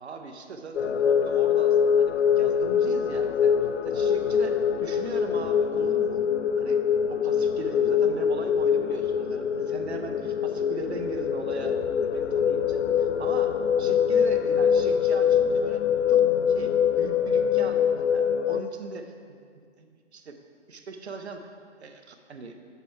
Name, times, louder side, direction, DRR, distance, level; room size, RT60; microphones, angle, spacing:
voice 1, 0.0-3.5 3.8-6.3 6.6-15.8 16.1-16.2 16.5-17.9 18.1-19.4 19.8-20.4 20.7-22.6, right 4 dB, 60° right, 5 dB, 0.7 m, -39 dB
sound 1, 0.8-18.6, left 8 dB, 70° left, 0.5 m, -24 dB
7.0 x 4.5 x 4.4 m, 2.1 s
figure-of-eight pair, 155°, 36 cm